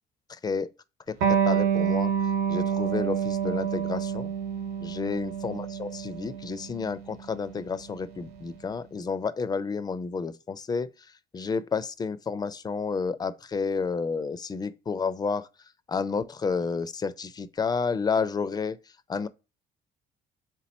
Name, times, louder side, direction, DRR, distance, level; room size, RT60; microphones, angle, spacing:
voice 1, 1.1-2.1 2.5-4.3 4.8-10.9 11.3-15.5 15.9-18.8 19.1-19.3, left 5 dB, 25° left, 0.3 m, -30 dB
Electric guitar, 1.2-8.4, right 7 dB, 90° right, 1.0 m, -28 dB
3.6 x 3.0 x 4.0 m
cardioid pair, 110°, 17 cm